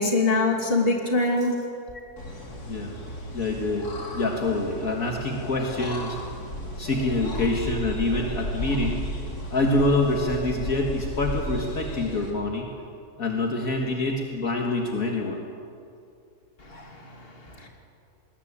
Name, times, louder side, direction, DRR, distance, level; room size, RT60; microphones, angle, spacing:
voice 1, 0.0-1.6 16.6-17.7, left 2 dB, 40° left, 1 dB, 2.9 m, -24 dB
sound 1, 2.2-12.3, equal, 80° left, 3.5 m, -34 dB
voice 2, 3.3-6.2 6.8-9.0 9.5-12.7 13.2-15.4 16.7-16.9, left 2 dB, 65° left, 1 dB, 2.2 m, -26 dB
20.5 x 20.0 x 8.6 m, 2.6 s
omnidirectional pair, 1.6 m